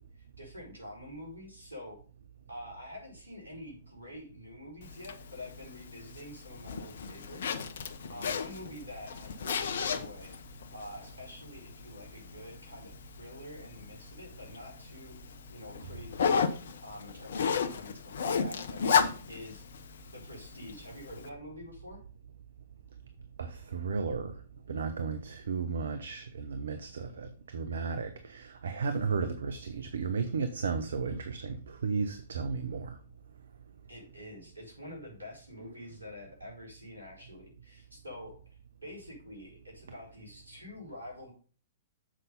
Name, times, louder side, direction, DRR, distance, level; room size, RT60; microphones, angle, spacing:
voice 1, 0.0-2.0 2.5-7.7 8.1-10.3 10.7-15.2 15.5-16.4 16.8-19.6 20.1-22.0 33.9-41.3, left 1 dB, 80° right, 4.2 m, -47 dB
Zipper (clothing), 4.8-21.3, left 6 dB, 55° left, 0.8 m, -35 dB
voice 2, 23.4-24.3 24.7-32.9, right 5 dB, 65° right, 0.7 m, -34 dB
7.5 x 5.5 x 5.2 m
figure-of-eight pair, 110°, 0 cm